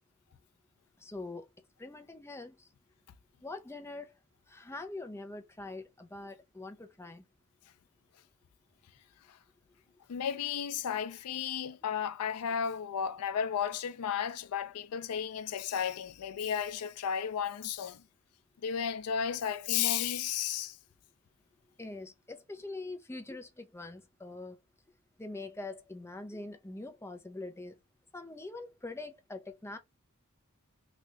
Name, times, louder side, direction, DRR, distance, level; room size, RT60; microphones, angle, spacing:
voice 1, 1.0-1.5 1.8-2.7 3.4-4.2 4.5-7.2 21.8-24.6 25.2-27.8 28.1-29.8, left 2 dB, 10° left, 0.5 m, -43 dB
voice 2, 10.1-18.0 18.6-20.8, left 8 dB, 85° left, 0.4 m, -33 dB
2.8 x 2.5 x 3.3 m
head